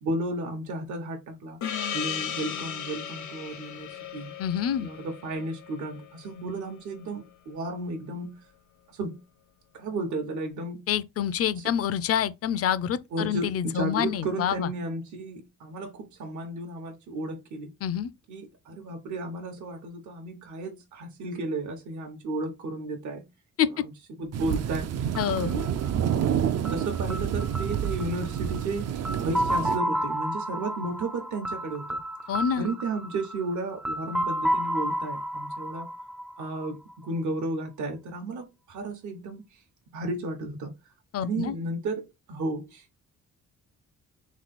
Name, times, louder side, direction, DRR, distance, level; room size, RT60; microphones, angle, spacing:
voice 1, 0.0-1.6 1.9-4.3 4.7-8.4 8.9-9.2 9.7-10.8 11.6-11.7 13.1-17.7 18.3-23.3 23.8-25.1 25.4-25.7 26.7-32.0 32.6-35.9 36.4-39.6 39.9-40.7 41.2-42.9, right 2 dB, 70° right, 1.0 m, -33 dB
Gong, 1.6-6.7, left 8 dB, 75° left, 0.9 m, -36 dB
voice 2, 4.4-4.9 10.9-14.7 17.8-18.1 23.6-23.7 25.2-25.5 32.3-32.7 41.1-41.5, left 9 dB, 50° left, 0.5 m, -27 dB
sound 1, 24.3-29.8, right 9 dB, 55° right, 0.5 m, -28 dB
sound 2, 25.2-36.9, equal, ahead, 0.4 m, -32 dB
3.7 x 3.1 x 4.1 m
cardioid pair, 100°, 30 cm